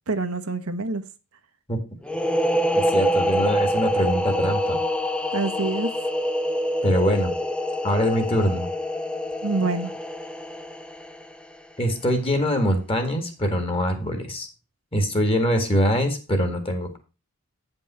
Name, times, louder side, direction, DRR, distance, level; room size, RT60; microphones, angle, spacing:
voice 1, 0.1-1.0 5.3-5.9 9.4-9.9, right 3 dB, 85° right, 1.0 m, -26 dB
sound 1, 2.0-11.6, equal, 5° left, 0.5 m, -26 dB
voice 2, 2.7-4.8 6.8-7.3 7.8-8.7 11.8-14.5 14.9-17.0, equal, 25° left, 1.7 m, -23 dB
9.0 x 5.4 x 5.5 m
head